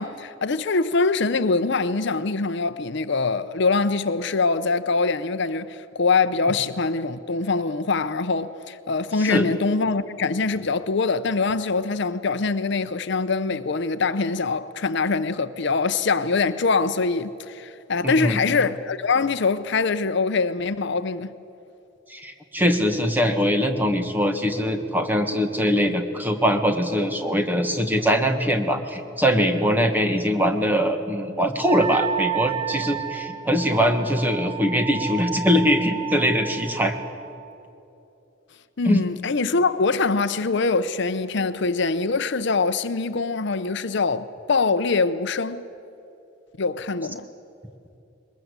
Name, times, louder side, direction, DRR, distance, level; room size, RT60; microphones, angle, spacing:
voice 1, 0.0-21.3 38.8-45.6 46.6-47.3, left 4 dB, 60° left, 0.7 m, -23 dB
voice 2, 18.0-18.4 22.1-37.0 38.8-39.0, equal, 10° right, 1.5 m, -22 dB
Wind instrument woodwind instrument, 31.6-37.2, right 8 dB, 35° right, 1.9 m, -31 dB
22.0 x 20.5 x 8.1 m
head